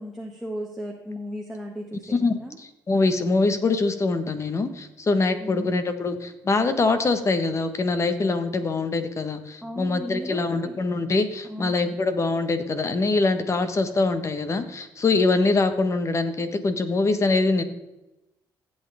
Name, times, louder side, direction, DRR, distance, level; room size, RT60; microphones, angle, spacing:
voice 1, 0.0-2.6 5.4-5.7 9.6-10.9 11.4-12.0, equal, ahead, -2 dB, 1.6 m, -36 dB
voice 2, 2.9-17.6, left 3 dB, 35° left, 9 dB, 1.3 m, -23 dB
15.5 x 8.3 x 3.5 m, 0.97 s
cardioid pair, 90°, 9 cm